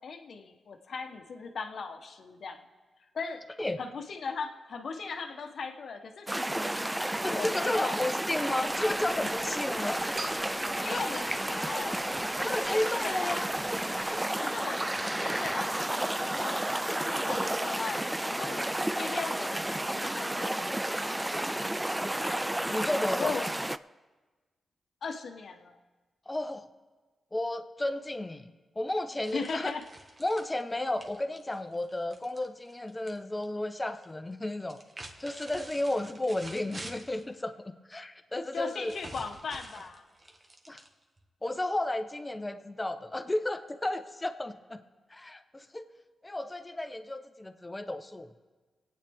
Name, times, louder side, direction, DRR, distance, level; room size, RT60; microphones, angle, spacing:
voice 1, 0.0-2.6 3.1-3.4 3.8-6.7 7.3-8.1 10.8-12.1 12.4-13.4 14.4-18.7 18.9-19.6 19.9-21.4 23.2-23.5 25.0-25.8 29.3-29.8 38.5-40.1, left 5 dB, 70° left, 5 dB, 1.1 m, -38 dB
sound 1, 6.3-23.8, right 1 dB, 10° right, 0.3 m, -31 dB
voice 2, 7.2-10.1 12.4-13.5 22.7-23.3 26.3-26.7 27.3-28.5 28.8-29.7 30.2-34.8 35.2-38.9 40.7-40.8 41.4-44.8 45.1-45.8 46.2-48.3, left 1 dB, 20° left, 9 dB, 0.9 m, -33 dB
sound 2, 8.6-14.1, right 1 dB, 80° right, 2.1 m, -49 dB
sound 3, 29.2-33.2 33.4-34.0 34.6-37.3 38.5-41.2, right 2 dB, 35° right, 1.3 m, -48 dB
25.0 x 9.0 x 3.5 m, 1.3 s
cardioid pair, 65°, 0 cm